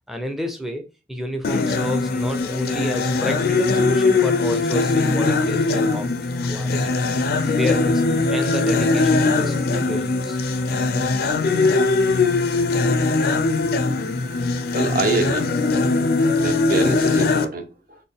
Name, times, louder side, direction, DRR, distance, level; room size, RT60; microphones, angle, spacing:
voice 1, 0.1-6.1 6.5-6.9 7.4-8.0 8.3-10.4, left 1 dB, ahead, 0.4 m, -30 dB
sound 1, 1.4-17.5, left 3 dB, 55° left, 0.4 m, -20 dB
voice 2, 14.7-15.4 16.4-18.0, right 2 dB, 50° right, 0.7 m, -25 dB
4.0 x 2.2 x 3.5 m
head